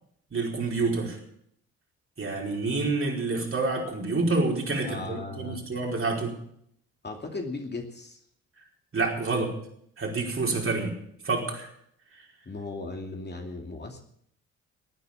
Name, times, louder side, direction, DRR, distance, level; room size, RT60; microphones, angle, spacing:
voice 1, 0.3-1.2 2.2-6.3 8.9-9.5 10.0-10.9 11.2-11.7, right 3 dB, 35° right, 0 dB, 4.9 m, -28 dB
voice 2, 4.8-5.6 7.0-8.2 12.5-14.0, left 3 dB, 30° left, 2 dB, 2.6 m, -37 dB
18.0 x 9.4 x 7.2 m, 0.69 s
hypercardioid pair, 45°, 36 cm